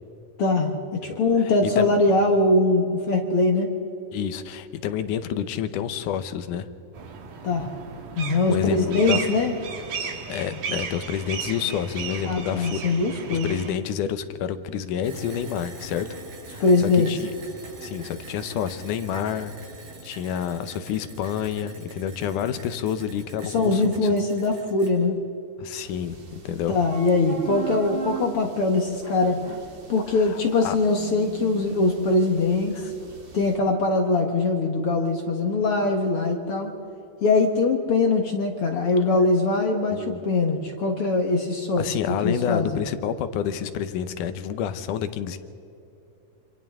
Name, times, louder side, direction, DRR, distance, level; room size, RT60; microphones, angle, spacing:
voice 1, 0.4-3.7 7.4-7.7 8.2-9.5 12.2-13.5 16.6-17.1 23.4-25.2 26.7-29.4 29.9-32.7 33.3-36.7 37.2-42.8, left 3 dB, 55° left, 3 dB, 1.7 m, -22 dB
voice 2, 1.1-1.9 4.1-6.7 8.5-9.3 10.3-12.9 13.3-16.1 16.5-17.3 17.8-19.5 20.0-24.1 25.6-26.8 30.1-30.8 32.7-32.9 39.9-40.2 41.8-45.4, left 9 dB, 70° left, 11 dB, 2.2 m, -29 dB
sound 1, 6.9-13.7, right 6 dB, 65° right, 3.1 m, -35 dB
sound 2, 15.0-24.9, right 3 dB, 85° right, 6.4 m, -43 dB
sound 3, 25.8-33.6, right 3 dB, 40° right, 2.3 m, -40 dB
27.5 x 26.5 x 3.7 m, 2.8 s
omnidirectional pair, 4.1 m